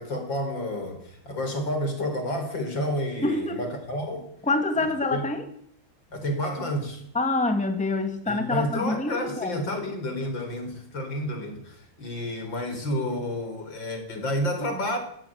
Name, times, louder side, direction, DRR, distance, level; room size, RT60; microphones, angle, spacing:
voice 1, 0.0-4.3 5.1-5.2 6.1-7.0 8.3-15.0, left 1 dB, 65° left, 6 dB, 5.1 m, -30 dB
voice 2, 3.2-3.7 4.4-5.4 7.1-9.8, left 2 dB, 5° left, 6 dB, 2.0 m, -26 dB
18.0 x 17.5 x 8.9 m, 0.66 s
omnidirectional pair, 2.2 m